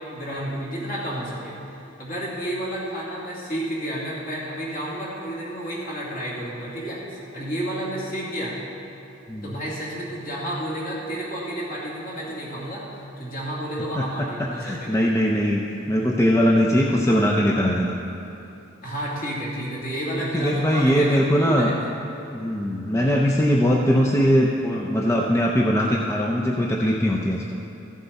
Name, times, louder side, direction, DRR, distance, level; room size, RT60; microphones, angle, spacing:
voice 1, 0.1-1.6 2.0-8.6 9.4-12.8 13.2-15.1 18.8-21.8, right 1 dB, 45° left, -6 dB, 2.7 m, -31 dB
voice 2, 14.6-15.6 15.9-18.0 20.3-21.7 22.3-27.6, equal, 15° left, -2 dB, 0.5 m, -21 dB
14.5 x 7.4 x 4.1 m, 2.9 s
head